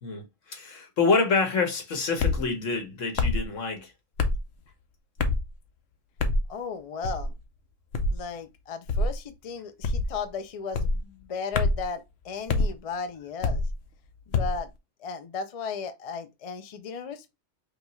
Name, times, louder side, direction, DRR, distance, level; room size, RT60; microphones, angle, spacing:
voice 1, 0.0-3.9, left 4 dB, 85° left, 1.5 m, -27 dB
sound 1, 2.2-2.4 3.2-3.4 4.2-4.4 5.2-5.5 6.2-6.5 7.0-7.3 7.9-8.2 8.9-9.2 9.8-10.2 10.7-11.0 11.5-11.9 12.5-12.7 13.4-13.7 14.3-14.6, left 3 dB, 65° left, 0.9 m, -25 dB
voice 2, 6.5-7.3 8.1-13.7 14.3-14.7 15.0-17.3, left 5 dB, 45° left, 0.5 m, -35 dB
5.2 x 2.4 x 3.0 m
omnidirectional pair, 1.3 m